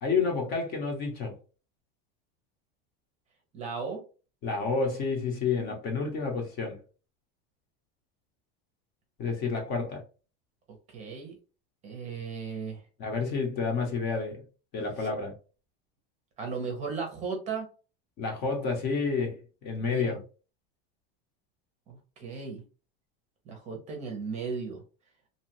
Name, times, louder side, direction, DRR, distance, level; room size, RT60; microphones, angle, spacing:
voice 1, 0.0-1.4 4.4-6.8 9.2-10.0 13.0-14.4 14.7-15.3 18.2-20.2, left 4 dB, 35° left, 0.8 m, -30 dB
voice 2, 3.5-4.0 10.9-11.3 11.8-12.8 15.0-15.1 16.4-17.7 19.8-20.2 21.9-22.6 23.5-24.8, right 5 dB, 25° right, 0.7 m, -36 dB
2.7 x 2.4 x 2.8 m
supercardioid pair, 165°, 29 cm